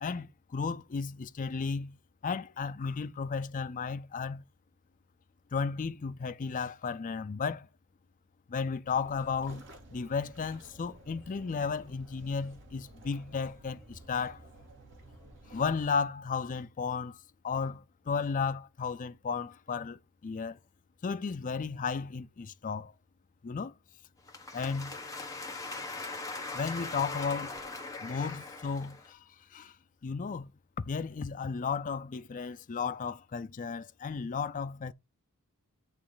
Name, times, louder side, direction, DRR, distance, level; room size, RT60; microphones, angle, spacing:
voice 1, 0.0-4.4 5.5-7.7 8.5-14.4 15.5-17.2 17.4-20.6 21.0-22.9 23.4-23.7 24.5-25.0 26.5-27.6 28.0-29.2 29.5-29.7 30.0-30.5 30.8-34.9, left 5 dB, 35° left, 0.4 m, -34 dB
sound 1, 8.8-15.9, right 1 dB, 55° right, 2.3 m, -53 dB
sound 2, 24.3-29.1, left 3 dB, 15° left, 1.4 m, -40 dB
9.1 x 3.2 x 4.9 m
head